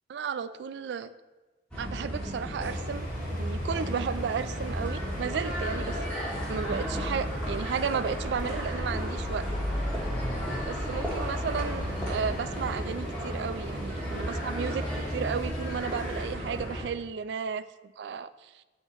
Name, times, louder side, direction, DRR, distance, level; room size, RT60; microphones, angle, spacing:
voice 1, 0.1-1.1 1.8-6.2 6.5-9.5 10.6-17.6 18.0-18.5, right 6 dB, 70° right, 14 dB, 0.3 m, -33 dB
sound 1, 1.7-16.8, equal, 5° left, 1.4 m, -33 dB
sound 2, 2.6-16.3, equal, 50° left, 1.7 m, -45 dB
8.2 x 2.9 x 5.6 m, 1.2 s
head